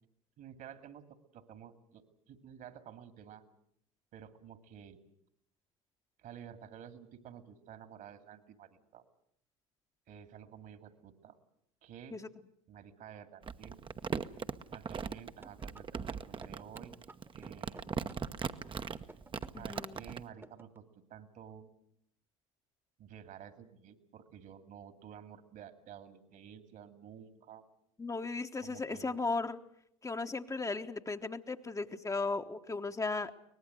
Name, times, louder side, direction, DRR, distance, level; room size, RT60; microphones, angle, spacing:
voice 1, 0.4-1.0 1.3-3.4 4.1-5.0 6.2-9.0 10.1-11.4 11.8-12.2 12.7-13.8 14.7-16.9 17.3-17.9 19.5-20.8 21.1-21.7 23.0-27.7 28.6-29.2, right 9 dB, 55° right, 9 dB, 2.4 m, -52 dB
Crumpling crinkling, 13.4-20.2, right 6 dB, 30° right, 1.0 m, -39 dB
sound 1, 15.4-20.8, right 3 dB, 15° right, 1.3 m, -54 dB
voice 2, 19.5-20.0 28.0-29.6 30.0-33.4, left 3 dB, 20° left, 6 dB, 1.2 m, -36 dB
23.5 x 19.5 x 7.9 m, 0.72 s
hypercardioid pair, 65°, 17 cm